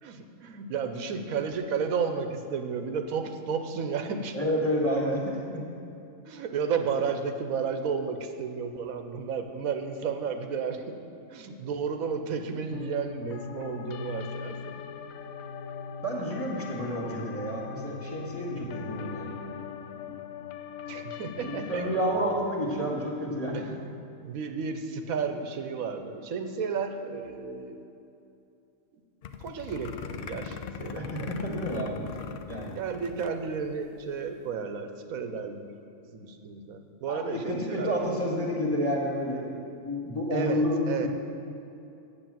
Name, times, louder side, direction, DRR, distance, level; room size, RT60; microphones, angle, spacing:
voice 1, 0.0-4.4 6.2-10.9 11.3-14.7 20.9-21.9 23.5-23.7 24.2-27.8 29.4-31.8 32.8-35.7 36.1-38.1 40.3-41.1, right 6 dB, 90° right, 7 dB, 1.2 m, -32 dB
voice 2, 4.3-5.6 16.0-19.4 21.4-23.7 30.9-32.1 32.5-32.7 37.1-41.1, equal, 10° left, -2 dB, 1.7 m, -30 dB
sound 1, 12.7-22.2, left 6 dB, 85° left, 1.0 m, -40 dB
sound 2, 29.2-33.4 33.7-33.8 34.0-34.3, left 6 dB, 60° left, 0.6 m, -40 dB
8.3 x 8.0 x 7.4 m, 2.7 s
omnidirectional pair, 1.4 m